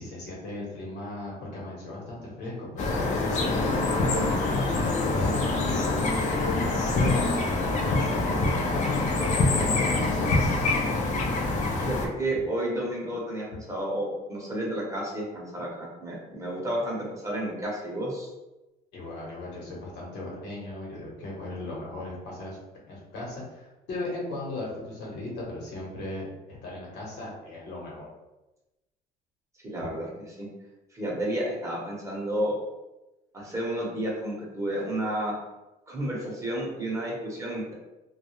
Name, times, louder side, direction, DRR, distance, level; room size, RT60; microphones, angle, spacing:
voice 1, 0.0-10.5 18.9-22.6 22.9-28.1, left 2 dB, 75° left, -4 dB, 0.9 m, -37 dB
sound 1, 2.8-12.1, left 2 dB, 45° left, 0.4 m, -25 dB
voice 2, 11.8-18.3 29.6-30.5 30.9-32.5 33.3-35.3 35.9-37.7, right 1 dB, 15° right, -4 dB, 0.7 m, -31 dB
2.2 x 2.0 x 2.9 m, 1.0 s
cardioid pair, 110°, 17 cm